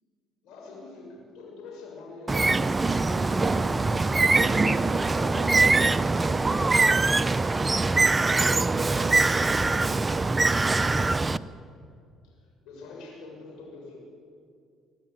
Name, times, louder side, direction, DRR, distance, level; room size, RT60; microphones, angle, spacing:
voice 1, 0.4-3.7 4.4-7.4 12.2-14.0, left 3 dB, 75° left, -2 dB, 6.5 m, -45 dB
Bird, 2.3-11.4, right 3 dB, 25° right, 0.7 m, -23 dB
24.0 x 12.5 x 9.2 m, 2.4 s
supercardioid pair, 75°, 0 cm